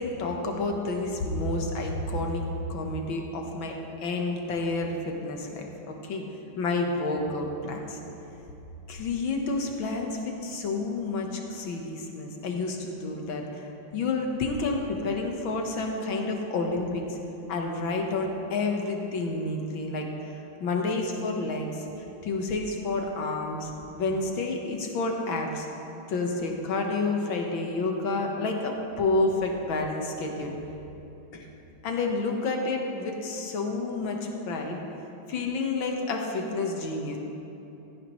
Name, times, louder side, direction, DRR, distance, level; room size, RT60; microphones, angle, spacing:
voice 1, 0.0-6.2 6.6-8.0 8.9-17.2 17.5-25.7 26.1-30.5 31.3-31.5 31.8-34.8 35.3-37.2, left 3 dB, 70° left, 2 dB, 1.9 m, -30 dB
16.5 x 13.5 x 3.1 m, 3.0 s
omnidirectional pair, 2.3 m